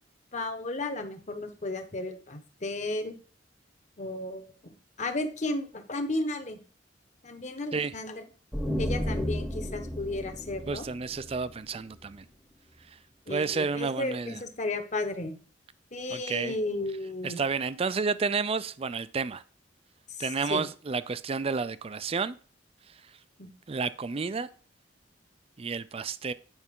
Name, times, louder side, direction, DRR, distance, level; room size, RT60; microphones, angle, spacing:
voice 1, 0.3-3.2 4.0-4.5 5.0-6.6 7.2-8.2 8.8-10.9 13.3-15.4 15.9-17.4 20.2-20.6 23.4-23.5, left 2 dB, 40° left, 1.2 m, -33 dB
sound 1, 8.5-12.1, equal, ahead, 0.9 m, -33 dB
voice 2, 10.7-12.2 13.3-14.4 16.1-16.5 17.2-19.4 20.2-22.4 23.7-24.5 25.6-26.3, right 5 dB, 30° right, 0.4 m, -31 dB
9.6 x 5.5 x 3.7 m
head